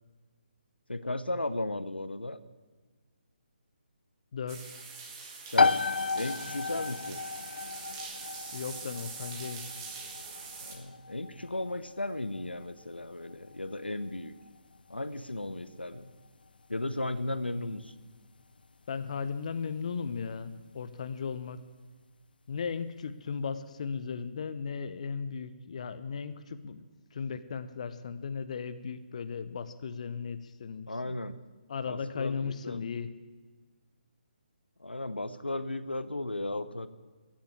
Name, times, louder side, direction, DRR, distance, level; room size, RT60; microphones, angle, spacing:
voice 1, 0.9-2.4 5.5-5.8 6.1-7.2 10.6-14.3 14.9-16.1 16.7-17.9 30.9-31.3 31.9-32.9 34.8-36.9, left 2 dB, 85° left, 13 dB, 0.8 m, -35 dB
voice 2, 4.3-4.7 8.5-9.6 18.9-21.6 22.5-26.8 27.1-31.1 31.7-33.1, left 6 dB, 40° left, 11 dB, 0.7 m, -36 dB
sound 1, 4.5-10.8, right 4 dB, 25° right, 2.0 m, -43 dB
sound 2, 5.6-20.1, left 4 dB, 65° left, 0.4 m, -35 dB
16.0 x 7.5 x 8.9 m, 1.4 s
figure-of-eight pair, 145°, 5 cm